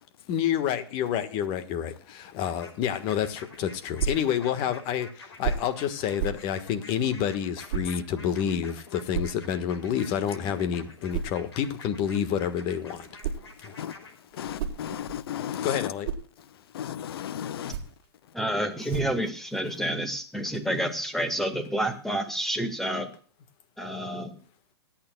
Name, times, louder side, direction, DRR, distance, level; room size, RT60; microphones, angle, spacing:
voice 1, 0.3-13.1 13.6-13.7 15.6-16.1, left 9 dB, 35° left, 1.5 m, -28 dB
sound 1, 2.4-14.1, left 3 dB, 80° left, 5.4 m, -48 dB
sound 2, 4.0-4.3 5.4-5.7 6.2-6.5 7.7-7.9 9.1-9.4 11.1-11.4 12.9-13.5 14.3-15.3 15.7-16.3 17.5-18.0 18.9-19.2, right 7 dB, 55° right, 1.7 m, -32 dB
voice 2, 14.4-15.9 16.7-17.7, left 10 dB, 65° left, 0.7 m, -34 dB
voice 3, 18.3-23.2 23.8-24.4, right 1 dB, ahead, 1.8 m, -29 dB
25.5 x 8.9 x 2.3 m
hypercardioid pair, 130°, 13 cm